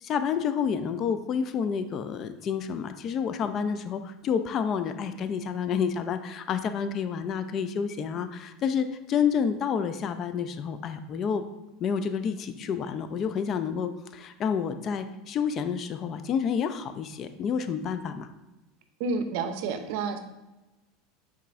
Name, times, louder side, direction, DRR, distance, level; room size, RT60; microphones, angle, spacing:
voice 1, 0.0-11.4 11.8-18.3, left 7 dB, 40° left, 10 dB, 0.4 m, -29 dB
voice 2, 19.0-20.2, right 4 dB, 70° right, 8 dB, 0.5 m, -29 dB
5.4 x 3.7 x 2.5 m, 1.1 s
supercardioid pair, 110°, 0 cm